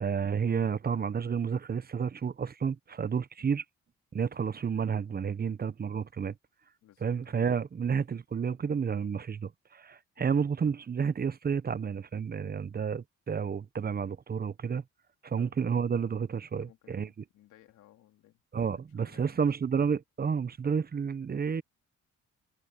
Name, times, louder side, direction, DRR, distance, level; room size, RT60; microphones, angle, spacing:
voice 1, 0.0-3.6 4.1-6.3 7.0-14.8 15.2-17.1 18.5-21.6, right 6 dB, 30° right, 0.8 m, -30 dB
voice 2, 6.8-7.3 10.2-10.3 15.4-15.5 16.5-19.4, left 14 dB, 85° left, 3.0 m, -60 dB
cardioid pair, 90°, 30 cm